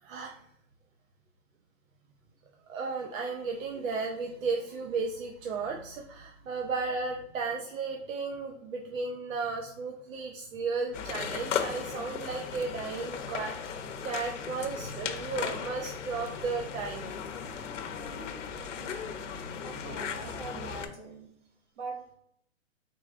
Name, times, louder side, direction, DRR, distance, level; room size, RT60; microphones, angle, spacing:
voice 1, 0.0-0.3 2.7-17.1 18.2-18.3, right 4 dB, 75° right, 2 dB, 0.8 m, -34 dB
sound 1, 10.9-20.9, left 7 dB, 65° left, 0.7 m, -37 dB
voice 2, 19.6-21.3 21.8-22.1, right 2 dB, 60° right, 0 dB, 1.5 m, -42 dB
4.2 x 4.0 x 2.5 m, 0.73 s
hypercardioid pair, 175°, 40 cm